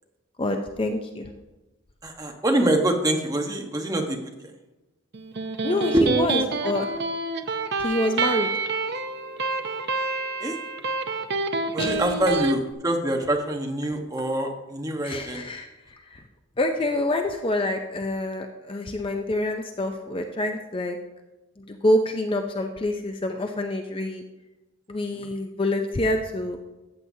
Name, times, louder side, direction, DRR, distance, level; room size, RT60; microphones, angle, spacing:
voice 1, 0.4-1.3 5.6-6.9 7.8-8.5 11.8-12.0 15.0-16.2 16.6-21.0 21.6-24.2 24.9-26.6, left 1 dB, 25° left, 5 dB, 0.5 m, -27 dB
voice 2, 2.0-4.5 5.9-6.1 10.4-10.6 11.7-15.4 25.1-25.3, right 1 dB, 15° right, 2 dB, 1.0 m, -25 dB
Electric guitar, 5.1-12.5, right 3 dB, 50° right, 0.6 m, -27 dB
14.0 x 7.8 x 2.7 m, 1.0 s
head